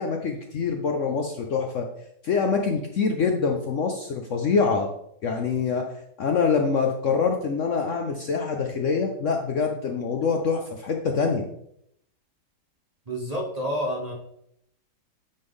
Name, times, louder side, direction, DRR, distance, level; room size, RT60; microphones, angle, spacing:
voice 1, 0.0-1.8 2.2-4.9 5.2-5.9 6.2-11.4, left 5 dB, 60° left, 3 dB, 0.9 m, -25 dB
voice 2, 13.1-14.1, equal, 25° right, -1 dB, 1.0 m, -29 dB
9.6 x 4.4 x 3.6 m, 0.73 s
omnidirectional pair, 1.8 m